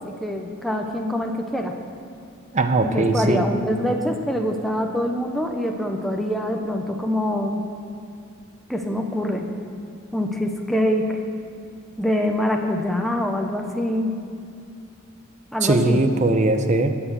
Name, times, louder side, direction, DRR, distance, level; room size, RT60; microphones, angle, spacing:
voice 1, 0.0-1.7 2.8-7.6 8.7-9.5 10.1-11.2 12.0-14.2 15.5-16.0, left 1 dB, ahead, 2 dB, 0.7 m, -24 dB
voice 2, 2.5-3.4 15.6-17.0, right 2 dB, 35° right, 8 dB, 0.7 m, -20 dB
12.0 x 6.0 x 8.0 m, 2.4 s
head